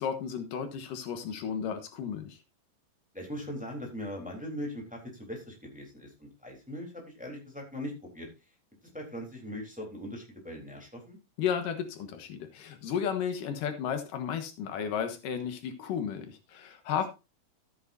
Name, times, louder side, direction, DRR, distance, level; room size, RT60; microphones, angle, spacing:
voice 1, 0.0-2.4 11.4-17.1, left 8 dB, 80° left, 8 dB, 2.9 m, -33 dB
voice 2, 3.1-8.3 8.9-11.2, equal, ahead, 0 dB, 3.2 m, -40 dB
13.5 x 9.0 x 2.7 m, 0.26 s
omnidirectional pair, 3.8 m